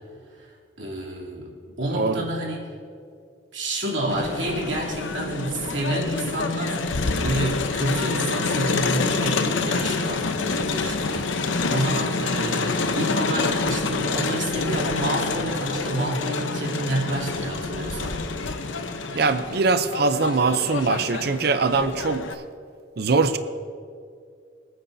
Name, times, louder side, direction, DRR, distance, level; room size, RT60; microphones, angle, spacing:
voice 1, 0.4-1.5 1.8-2.7 3.5-18.2, right 1 dB, 75° right, -4 dB, 3.0 m, -29 dB
voice 2, 1.9-2.2 19.1-22.4 23.0-23.4, right 4 dB, 55° right, 9 dB, 0.5 m, -22 dB
Crowd, 4.1-22.3, left 3 dB, 85° left, 0.8 m, -27 dB
24.5 x 9.4 x 2.7 m, 2.3 s
head